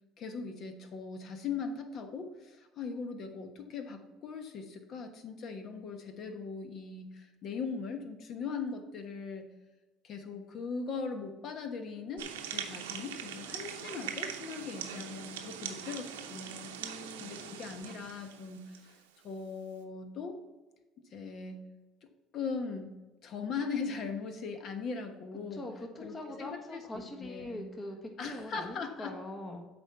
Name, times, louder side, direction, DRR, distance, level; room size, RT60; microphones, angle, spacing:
voice 1, 0.2-9.5 10.0-16.8 17.2-18.9 19.2-20.4 21.1-21.7 22.3-22.9 23.2-25.7 26.0-27.7 28.2-29.1, left 5 dB, 55° left, 6 dB, 1.2 m, -40 dB
sound 1, 12.2-19.0, right 8 dB, 85° right, 0.7 m, -42 dB
voice 2, 16.8-17.6 25.5-29.6, left 1 dB, 30° left, 3 dB, 1.5 m, -43 dB
8.0 x 4.5 x 5.5 m, 1.2 s
hypercardioid pair, 70°, 0 cm